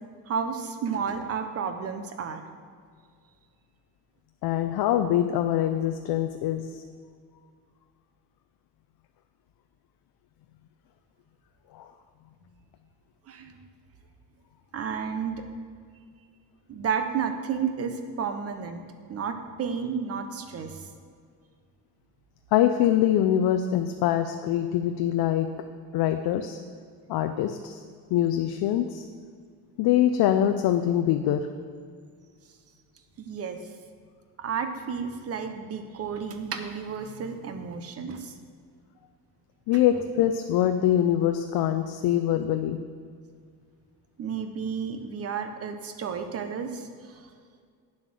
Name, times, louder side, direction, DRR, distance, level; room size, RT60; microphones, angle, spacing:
voice 1, 0.3-2.4 13.3-13.6 14.7-15.4 16.7-18.8 19.1-20.8 33.2-33.6 34.4-38.4 44.2-47.2, right 6 dB, 35° right, 7 dB, 0.8 m, -32 dB
voice 2, 4.4-6.8 11.7-11.9 22.5-25.5 25.9-26.6 27.1-27.8 28.1-29.0 29.8-31.5 39.7-42.8, left 11 dB, 70° left, 7 dB, 0.6 m, -24 dB
8.7 x 7.5 x 6.2 m, 2.1 s
cardioid pair, 170°, 39 cm